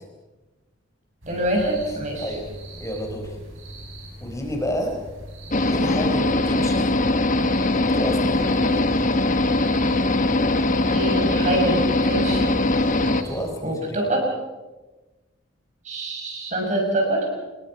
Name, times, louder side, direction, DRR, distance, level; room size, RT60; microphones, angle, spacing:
sound 1, 1.2-13.5, right 1 dB, 85° right, 7.9 m, -40 dB
voice 1, 1.3-2.3 10.9-12.6 13.6-14.3 15.8-17.3, right 1 dB, 35° right, 0 dB, 6.8 m, -25 dB
voice 2, 1.9-2.5 2.8-3.4 4.2-5.0 5.7-6.9 7.7-8.9 13.0-14.0, equal, 15° left, 3 dB, 4.5 m, -30 dB
sound 2, 5.5-13.2, left 2 dB, 40° left, 1.2 m, -21 dB
26.5 x 21.5 x 5.9 m, 1.2 s
head